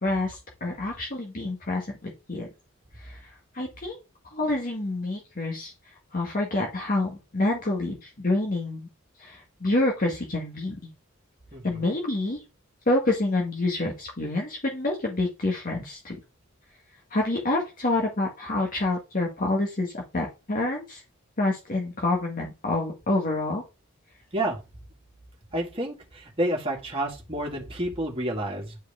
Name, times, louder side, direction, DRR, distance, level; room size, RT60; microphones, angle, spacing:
voice 1, 0.0-2.5 3.0-4.0 4.2-8.9 9.2-10.9 11.6-12.4 12.9-16.2 17.1-21.0 21.4-23.6, left 2 dB, 45° left, -1 dB, 1.6 m, -27 dB
voice 2, 11.5-11.9 24.3-24.6 25.5-28.8, right 1 dB, 25° right, -1 dB, 2.1 m, -30 dB
10.0 x 4.8 x 3.6 m, 0.28 s
head